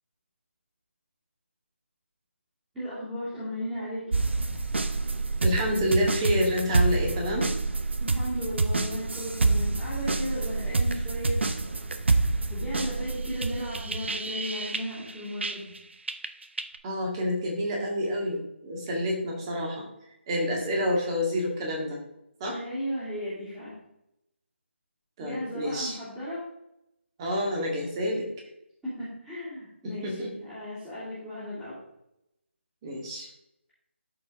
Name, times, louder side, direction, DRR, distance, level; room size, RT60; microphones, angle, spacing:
voice 1, 2.7-4.2 8.0-11.4 12.5-15.7 22.5-23.7 25.2-26.5 28.8-31.8, equal, 5° right, -14 dB, 2.5 m, -35 dB
sound 1, 4.1-15.8 16.1-16.8, right 3 dB, 65° right, 0.8 m, -27 dB
voice 2, 5.4-7.5 16.8-19.8 20.3-22.0 22.4-22.6 25.2-26.0 27.2-28.3 30.0-30.3 32.8-33.3, equal, 20° right, -1 dB, 1.9 m, -28 dB
12.5 x 4.7 x 3.6 m, 0.83 s
figure-of-eight pair, 155°, 7 cm